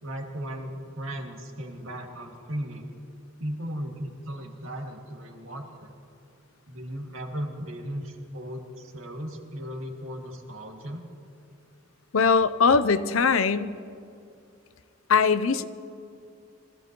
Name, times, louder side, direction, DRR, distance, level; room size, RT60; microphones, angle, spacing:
voice 1, 0.0-2.9 3.4-5.9 6.7-11.0, equal, 75° right, 1 dB, 2.2 m, -36 dB
voice 2, 12.1-13.7 15.1-15.6, left 5 dB, 80° left, 14 dB, 0.6 m, -21 dB
24.5 x 16.0 x 3.1 m, 2.5 s
head